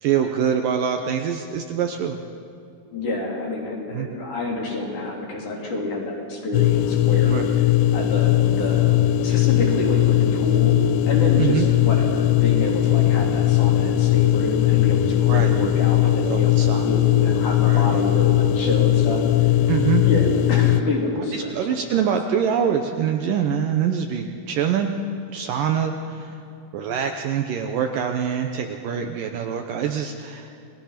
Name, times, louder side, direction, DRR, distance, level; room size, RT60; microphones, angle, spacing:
voice 1, 0.0-2.2 3.9-4.1 7.3-7.5 11.4-11.7 15.2-15.5 16.0-17.0 17.6-17.9 19.7-20.0 21.3-24.9 25.3-26.4 26.7-30.5, right 8 dB, 70° right, 5 dB, 2.2 m, -24 dB
voice 2, 2.9-7.7 7.9-9.0 9.2-10.8 11.0-19.5 20.0-22.0, left 2 dB, 50° left, -2 dB, 4.6 m, -28 dB
sound 1, 6.5-20.8, left 13 dB, 80° left, 2.5 m, -19 dB
29.0 x 20.0 x 5.9 m, 2.5 s
omnidirectional pair, 4.6 m